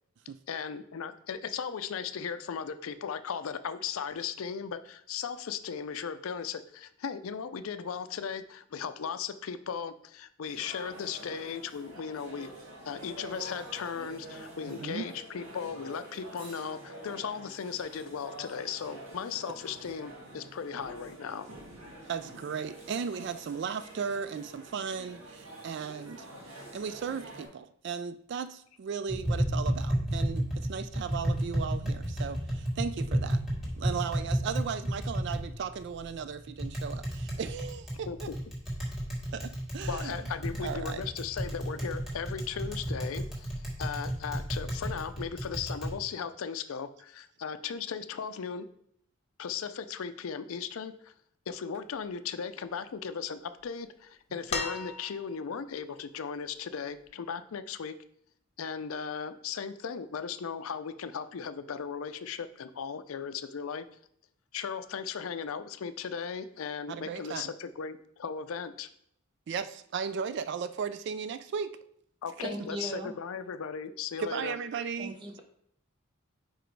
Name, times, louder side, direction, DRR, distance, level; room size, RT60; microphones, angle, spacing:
voice 1, 0.5-12.5 12.9-21.5 38.1-38.2 39.9-43.5 43.8-48.7 49.4-51.1 51.5-57.9 58.6-63.9 64.5-68.9 72.2-74.6, left 6 dB, 75° left, 12 dB, 0.4 m, -37 dB
sound 1, 10.4-27.5, right 1 dB, 75° right, 2.0 m, -47 dB
voice 2, 14.7-15.1 22.1-26.3 26.7-33.4 33.7-38.3 39.3-40.1 40.6-41.0 66.9-67.5 69.5-71.8 74.2-75.2, right 6 dB, 55° right, 12 dB, 0.3 m, -36 dB
Tap, 29.1-45.9, right 1 dB, ahead, 1.6 m, -32 dB
sound 2, 54.5-55.5 57.0-57.1, left 4 dB, 30° left, 0.8 m, -35 dB
voice 3, 72.5-73.1 75.0-75.4, right 1 dB, 20° right, 4 dB, 0.7 m, -38 dB
5.0 x 4.5 x 4.6 m, 0.69 s
head